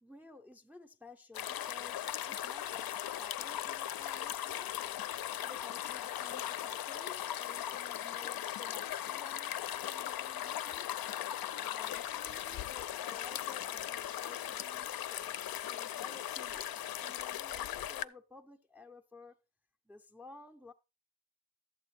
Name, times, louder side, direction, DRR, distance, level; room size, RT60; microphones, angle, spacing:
voice 1, 0.0-4.8 5.4-10.9 11.6-19.4 19.9-20.7, left 3 dB, 5° right, 0.5 m, -55 dB
sound 1, 1.3-18.0, left 11 dB, 60° left, 0.5 m, -38 dB
11.5 x 7.8 x 3.1 m
wide cardioid pair, 130°, 42 cm